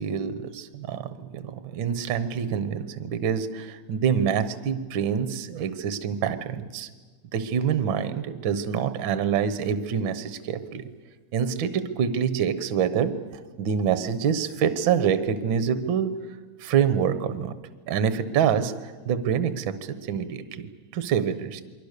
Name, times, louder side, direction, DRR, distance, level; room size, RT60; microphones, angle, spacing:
voice 1, 0.0-6.9 7.3-10.9 11.3-13.2 13.6-16.2 16.6-17.5 17.9-18.7 19.0-20.7 20.9-21.6, right 7 dB, 60° right, 12 dB, 1.4 m, -26 dB
28.5 x 22.5 x 6.7 m, 1.4 s
omnidirectional pair, 3.5 m